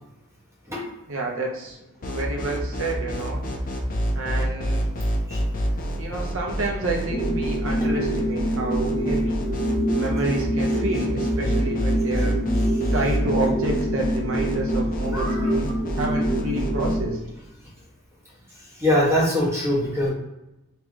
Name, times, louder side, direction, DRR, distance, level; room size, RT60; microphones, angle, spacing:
voice 1, 1.1-3.4 4.1-4.8 6.0-9.4 9.9-12.4 12.9-17.2, right 2 dB, 65° right, -1 dB, 0.9 m, -29 dB
sound 1, 2.0-17.0, equal, 40° left, 0.6 m, -28 dB
sound 2, 7.1-17.1, right 1 dB, 20° left, 0.9 m, -26 dB
voice 2, 15.1-15.5 18.8-20.1, left 1 dB, 15° right, -6 dB, 1.2 m, -22 dB
3.2 x 3.0 x 3.7 m, 0.93 s
head